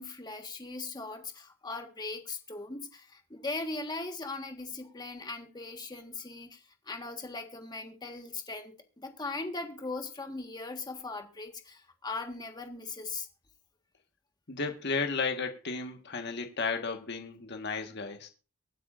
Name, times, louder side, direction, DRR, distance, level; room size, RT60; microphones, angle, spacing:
voice 1, 0.0-13.3, left 3 dB, 20° left, 1.5 m, -39 dB
voice 2, 14.5-18.3, left 4 dB, 55° left, 1.5 m, -33 dB
24.0 x 9.2 x 2.6 m
head